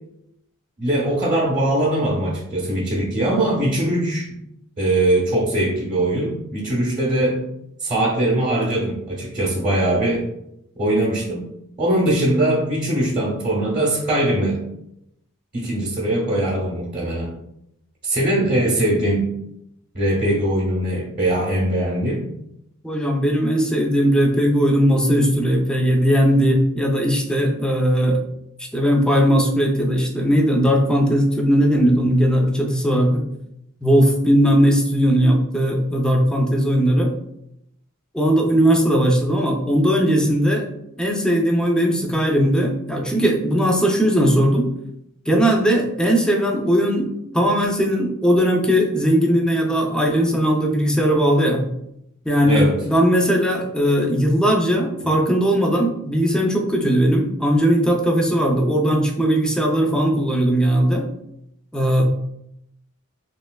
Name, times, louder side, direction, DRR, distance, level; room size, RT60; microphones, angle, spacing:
voice 1, 0.8-4.4 4.8-7.4 7.8-10.2 10.8-11.4 11.8-14.6 15.5-17.3 18.0-19.3 19.9-22.2 52.4-52.7 55.0-55.1, right 1 dB, 40° right, -5 dB, 0.7 m, -21 dB
voice 2, 22.8-28.2 28.7-33.2 33.8-37.1 38.1-40.7 41.0-44.7 45.3-51.7 52.3-61.0 61.7-62.0, equal, 5° left, 1 dB, 0.3 m, -18 dB
3.1 x 2.8 x 2.2 m, 0.80 s
head